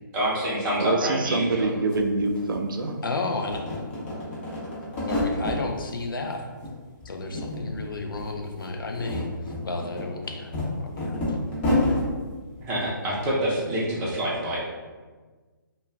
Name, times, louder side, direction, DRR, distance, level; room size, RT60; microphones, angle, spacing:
voice 1, 0.1-1.7 12.6-14.7, equal, 15° right, -6 dB, 0.6 m, -27 dB
voice 2, 0.8-3.0, right 3 dB, 75° right, 5 dB, 0.4 m, -25 dB
sound 1, 1.6-1.7 1.9-3.1 3.4-5.6 6.0-6.7 7.0-8.3 8.8-12.1, left 1 dB, 30° left, 0.9 m, -29 dB
voice 3, 3.0-3.6 5.1-6.4 7.0-9.3 9.6-10.5 10.8-11.2, left 3 dB, 80° left, 3 dB, 0.5 m, -32 dB
2.3 x 2.2 x 3.2 m, 1.4 s
figure-of-eight pair, 145°, 11 cm